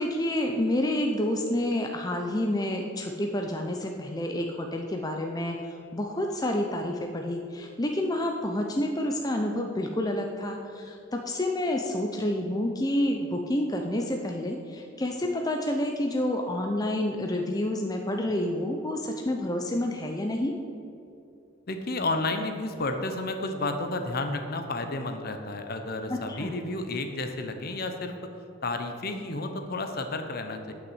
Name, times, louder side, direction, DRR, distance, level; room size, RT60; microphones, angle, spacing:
voice 1, 0.0-5.6 5.9-20.5 26.1-26.5, left 1 dB, 20° left, 2 dB, 0.6 m, -29 dB
voice 2, 21.7-28.1 28.6-30.7, left 2 dB, 50° left, 6 dB, 0.9 m, -31 dB
9.1 x 6.1 x 7.8 m, 2.6 s
head